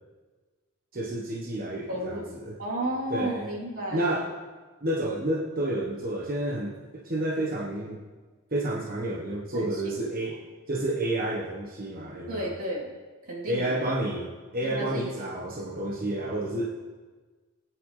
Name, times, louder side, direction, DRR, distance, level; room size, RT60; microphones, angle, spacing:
voice 1, 0.9-2.5 3.1-3.5 3.9-4.3 4.8-8.0 8.5-12.5 13.5-16.7, right 1 dB, 45° right, -3 dB, 1.2 m, -30 dB
voice 2, 1.9-4.3 9.5-10.0 12.3-13.0 13.2-13.9 14.6-15.1 15.6-15.7, right 1 dB, 65° right, -6 dB, 3.4 m, -33 dB
19.5 x 9.3 x 3.3 m, 1.3 s
head